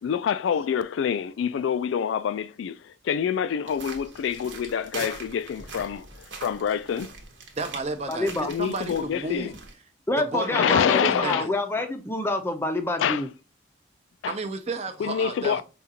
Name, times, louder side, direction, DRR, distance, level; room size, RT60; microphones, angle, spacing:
voice 1, 0.0-6.1 6.4-7.1 8.5-9.5 10.4-11.5 11.8-11.9 13.0-13.2 14.2-14.3 15.0-15.6, left 8 dB, 80° left, 0.3 m, -26 dB
sound 1, 3.7-9.7, right 3 dB, 75° right, 1.0 m, -42 dB
voice 2, 7.6-9.5 10.2-11.5 14.3-15.6, right 2 dB, 35° right, 0.5 m, -32 dB
voice 3, 8.1-8.5 10.1-13.3, left 1 dB, 10° left, 0.5 m, -27 dB
5.0 x 2.4 x 2.8 m
head